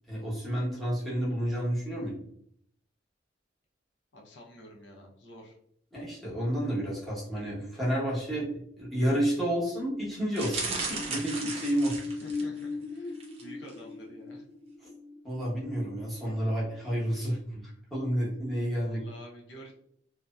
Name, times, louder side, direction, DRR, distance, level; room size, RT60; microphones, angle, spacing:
voice 1, 0.1-2.2 5.9-11.9 14.8-14.9 15.2-17.6 17.9-19.0, equal, ahead, -8 dB, 1.0 m, -30 dB
voice 2, 4.1-5.6 11.9-14.4 18.8-19.7, equal, 65° left, -1 dB, 0.7 m, -49 dB
sound 1, 10.3-12.6 13.1-13.4 13.7-13.8, right 3 dB, 30° right, 0.6 m, -35 dB
sound 2, 10.7-16.9 17.3-17.4, left 4 dB, 30° left, 0.3 m, -40 dB
2.6 x 2.1 x 2.2 m, 0.67 s
head